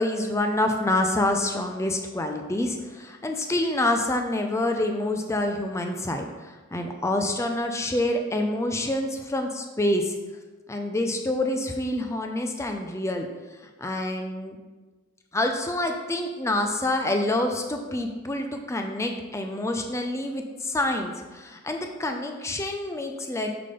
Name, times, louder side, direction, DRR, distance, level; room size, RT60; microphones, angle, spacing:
voice 1, 0.0-10.2 10.7-13.3 13.8-14.6 15.3-23.5, left 1 dB, 15° left, 4 dB, 0.4 m, -27 dB
6.7 x 3.7 x 5.1 m, 1.3 s
head